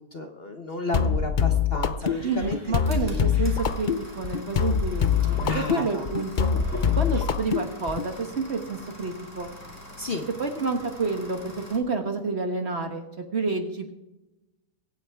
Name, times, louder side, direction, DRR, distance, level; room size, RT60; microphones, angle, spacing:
voice 1, 0.0-2.6 3.0-3.2 5.4-6.1 10.0-10.3, left 2 dB, 40° left, 4 dB, 1.1 m, -32 dB
sound 1, 0.9-8.1, left 7 dB, 90° left, 0.4 m, -24 dB
sound 2, 2.0-11.8, equal, 10° left, 2.1 m, -42 dB
voice 2, 2.2-6.5 6.9-9.5 10.4-13.9, right 4 dB, 40° right, 5 dB, 1.5 m, -29 dB
23.5 x 8.9 x 3.5 m, 0.98 s
omnidirectional pair, 1.8 m